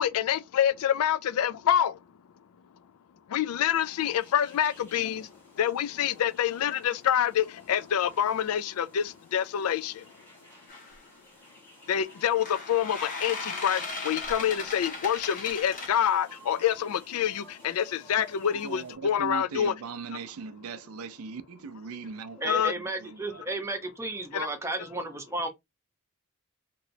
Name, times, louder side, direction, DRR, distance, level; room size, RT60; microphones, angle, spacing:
voice 1, 0.0-2.0 3.3-10.1 11.9-19.7 22.4-22.7 24.3-24.5, left 9 dB, 80° left, 0.4 m, -27 dB
sound 1, 3.7-18.9, equal, 10° left, 1.3 m, -54 dB
sound 2, 10.7-11.0 12.2-15.9, left 3 dB, 40° left, 1.0 m, -37 dB
voice 2, 18.6-23.4, right 5 dB, 75° right, 0.4 m, -39 dB
voice 3, 22.4-25.5, right 2 dB, 10° right, 0.7 m, -33 dB
3.0 x 2.9 x 2.6 m
head